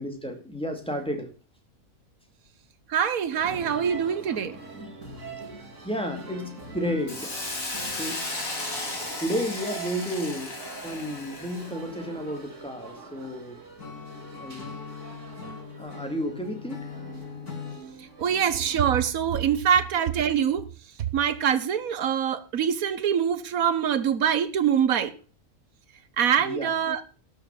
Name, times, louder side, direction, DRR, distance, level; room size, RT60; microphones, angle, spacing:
voice 1, 0.0-1.3 4.3-5.3 5.8-7.3 8.0-8.2 9.2-10.6 10.8-13.6 14.4-14.8 15.8-16.9 26.4-26.7, equal, 5° left, 2.2 m, -32 dB
voice 2, 2.9-4.6 18.2-20.7 21.1-25.1 26.2-27.0, right 8 dB, 70° right, 1.4 m, -24 dB
sound 1, 3.3-19.1, right 4 dB, 55° right, 2.6 m, -44 dB
Hiss, 7.1-11.8, left 2 dB, 65° left, 3.1 m, -35 dB
Acoustic guitar / Strum, 13.8-17.9, left 6 dB, 85° left, 2.9 m, -40 dB
12.0 x 6.6 x 6.9 m
omnidirectional pair, 1.6 m